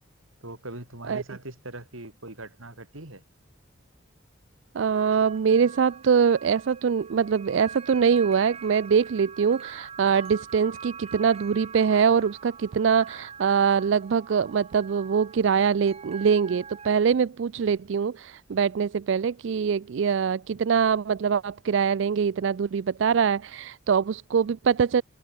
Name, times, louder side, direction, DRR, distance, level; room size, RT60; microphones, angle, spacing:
voice 1, 0.4-3.2, right 2 dB, 85° right, 5.4 m, -41 dB
voice 2, 4.7-25.0, right 6 dB, 65° right, 0.4 m, -23 dB
sound 1, 4.8-16.9, right 6 dB, 30° right, 0.8 m, -44 dB
head